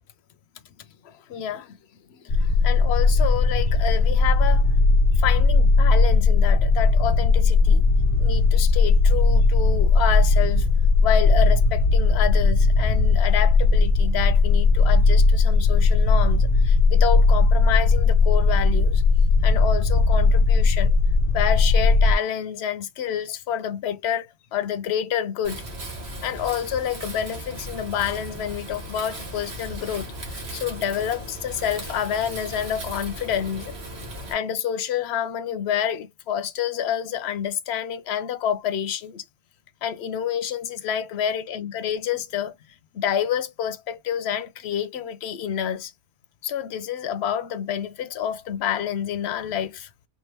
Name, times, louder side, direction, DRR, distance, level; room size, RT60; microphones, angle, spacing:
voice 1, 1.0-1.8 2.1-4.7 5.1-7.9 8.2-10.7 11.0-19.0 19.4-21.0 21.3-25.6 26.2-33.7 34.3-39.2 39.8-42.5 42.9-45.9 46.4-49.9, left 9 dB, 80° left, 0.9 m, -28 dB
sound 1, 2.3-22.1, left 3 dB, 45° left, 0.7 m, -18 dB
Wind, 25.4-34.3, right 1 dB, 80° right, 1.7 m, -37 dB
4.4 x 2.5 x 3.2 m
omnidirectional pair, 1.1 m